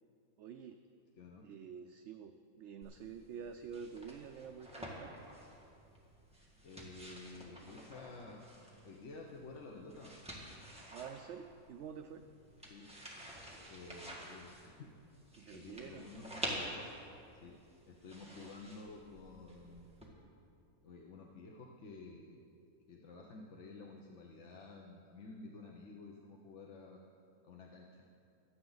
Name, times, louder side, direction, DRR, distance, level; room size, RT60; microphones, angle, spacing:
voice 1, 0.4-0.8 1.4-5.1 10.9-12.3 15.4-16.1, right 7 dB, 65° right, 7 dB, 0.7 m, -48 dB
voice 2, 1.2-1.5 6.6-8.4 8.8-10.2 12.7-12.9 13.7-15.0 15.5-16.7 17.3-17.6 17.9-20.0 20.8-22.4 22.9-27.0 27.4-28.0, left 3 dB, 55° left, 0 dB, 1.1 m, -52 dB
sound 1, 2.8-20.1, equal, 5° right, 1.9 m, -49 dB
23.5 x 8.4 x 4.0 m, 2.5 s
omnidirectional pair, 1.5 m